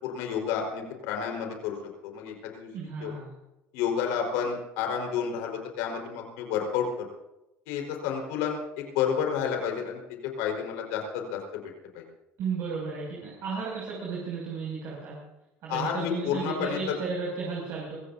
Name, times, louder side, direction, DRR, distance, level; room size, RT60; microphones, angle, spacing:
voice 1, 0.0-1.8 2.1-2.7 3.0-3.1 3.7-7.0 7.7-10.0 10.4-11.6 11.9-12.0 15.7-16.8, left 7 dB, 85° left, 2 dB, 4.6 m, -30 dB
voice 2, 2.7-3.3 12.4-15.2 15.6-18.0, right 5 dB, 60° right, -5 dB, 6.5 m, -34 dB
24.5 x 16.5 x 2.7 m, 0.93 s
cardioid pair, 115°, 6 cm